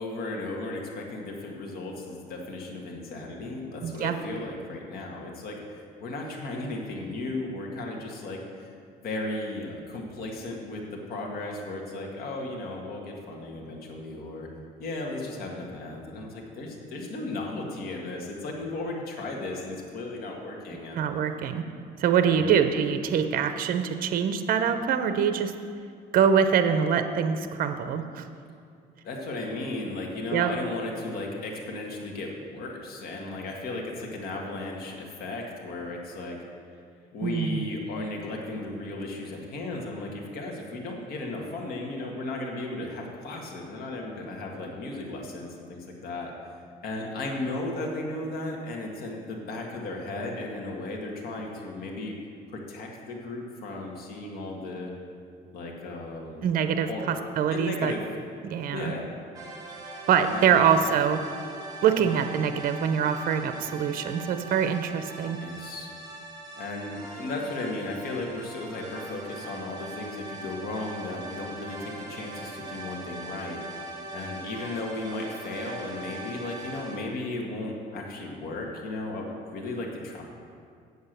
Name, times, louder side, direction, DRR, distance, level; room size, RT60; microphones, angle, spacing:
voice 1, 0.0-8.7 9.0-10.8 11.1-14.5 14.8-21.0 22.3-22.6 29.0-36.4 37.1-46.3 46.8-52.2 52.5-54.9 55.5-56.5 56.9-57.0 57.5-58.0 58.7-59.1 60.3-60.7 62.1-62.2 65.4-65.9 66.5-73.6 74.1-80.2, left 2 dB, 65° left, 0 dB, 2.0 m, -35 dB
voice 2, 3.8-4.1 20.9-21.6 22.0-25.5 26.1-28.3 30.3-30.5 37.2-37.7 56.4-57.9 58.4-58.9 60.1-61.2 61.8-65.4, right 7 dB, 60° right, 9 dB, 0.7 m, -24 dB
sound 1, 59.3-77.0, right 2 dB, 25° right, 2.2 m, -41 dB
8.0 x 7.9 x 6.7 m, 2.3 s
cardioid pair, 110°, 17 cm